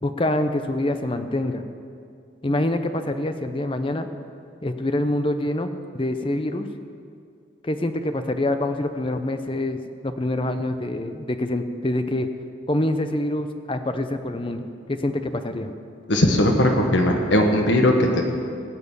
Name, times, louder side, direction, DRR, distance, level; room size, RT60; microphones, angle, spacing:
voice 1, 0.0-1.7 2.4-4.1 4.6-6.7 7.6-12.3 12.7-15.7, left 1 dB, 25° left, 8 dB, 0.7 m, -26 dB
voice 2, 16.1-18.2, left 1 dB, 70° left, 3 dB, 1.4 m, -18 dB
17.5 x 6.9 x 8.4 m, 2.4 s
head